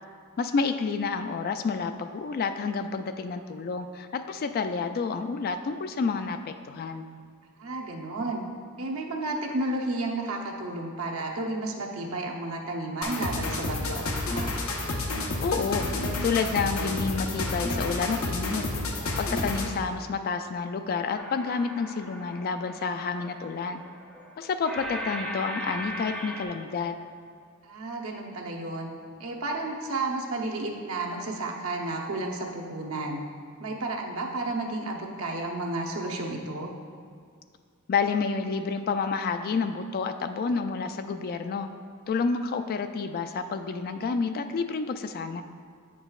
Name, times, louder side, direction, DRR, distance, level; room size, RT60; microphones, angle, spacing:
voice 1, 0.4-7.1 15.4-18.6 19.2-23.8 24.4-27.0 37.9-41.7 42.1-45.4, left 5 dB, 45° left, 9 dB, 0.3 m, -29 dB
voice 2, 7.6-8.4 8.8-14.5 27.6-28.9 29.2-33.2 33.6-36.7, right 2 dB, 75° right, 0 dB, 0.8 m, -32 dB
sound 1, 13.0-19.8, left 2 dB, 75° left, 0.8 m, -30 dB
sound 2, 21.2-26.4, equal, 5° left, 0.6 m, -39 dB
8.7 x 6.1 x 2.3 m, 2.1 s
head